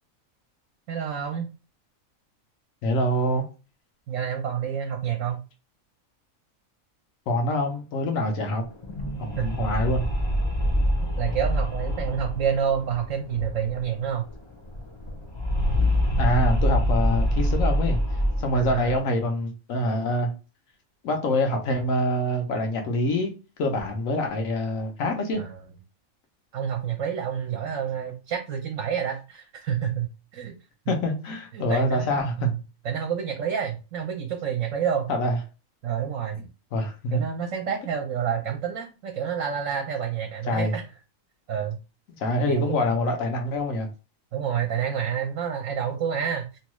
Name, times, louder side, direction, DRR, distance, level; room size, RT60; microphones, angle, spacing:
voice 1, 0.9-1.5 4.1-5.4 9.4-9.5 11.1-14.3 18.5-19.0 25.4-25.6 26.5-30.6 31.5-32.6 32.8-35.1 35.8-36.5 37.1-40.8 41.5-41.8 42.4-42.9 44.3-46.5, right 8 dB, 75° right, 0.9 m, -28 dB
voice 2, 2.8-3.4 7.3-8.6 9.2-10.1 16.2-18.0 18.4-20.3 21.0-23.3 23.6-25.4 30.9-32.5 35.1-35.4 36.7-37.2 40.5-40.7 42.2-43.9, left 1 dB, 80° left, 1.2 m, -25 dB
sound 1, 8.7-14.0 14.3-14.4 14.6-19.0, equal, 45° left, 0.3 m, -25 dB
3.0 x 2.2 x 3.0 m
omnidirectional pair, 1.4 m